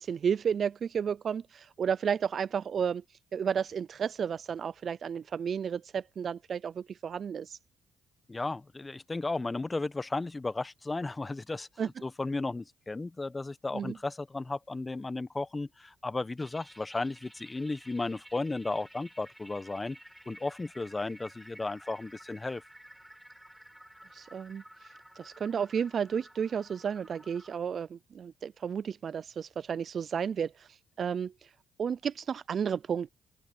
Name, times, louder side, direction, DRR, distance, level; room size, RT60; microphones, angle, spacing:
voice 1, 0.0-7.6 11.8-11.9 13.7-13.9 24.1-31.5 31.8-33.1, right 7 dB, 55° right, 0.4 m, -32 dB
voice 2, 8.3-11.7 12.0-20.0 20.3-22.6, left 3 dB, 25° left, 1.3 m, -34 dB
sound 1, 16.4-27.6, equal, 5° right, 7.5 m, -53 dB
open air
supercardioid pair, 55°, 0 cm